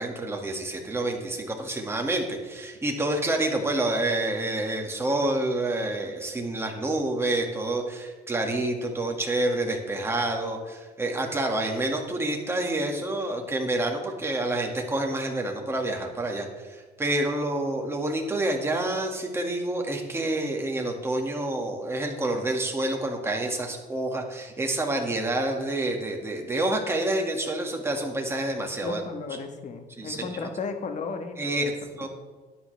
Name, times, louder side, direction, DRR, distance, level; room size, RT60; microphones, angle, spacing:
voice 1, 0.0-29.0 30.0-30.5 31.4-32.1, right 1 dB, 15° right, 1 dB, 2.1 m, -28 dB
voice 2, 28.8-31.7 32.0-32.1, left 4 dB, 45° left, 6 dB, 1.5 m, -34 dB
12.5 x 10.5 x 3.4 m, 1.3 s
cardioid pair, 110°, 17 cm